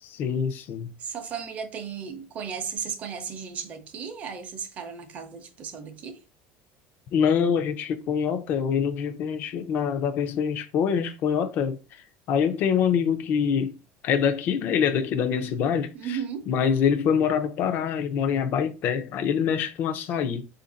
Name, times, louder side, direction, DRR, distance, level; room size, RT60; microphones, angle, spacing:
voice 1, 0.0-0.9 7.1-11.8 12.3-13.7 14.0-16.2 16.5-20.4, left 7 dB, 40° left, 0.5 m, -25 dB
voice 2, 1.0-6.2 15.9-16.5, right 7 dB, 30° right, 0.7 m, -35 dB
4.2 x 2.5 x 3.9 m
cardioid pair, 175°, 5 cm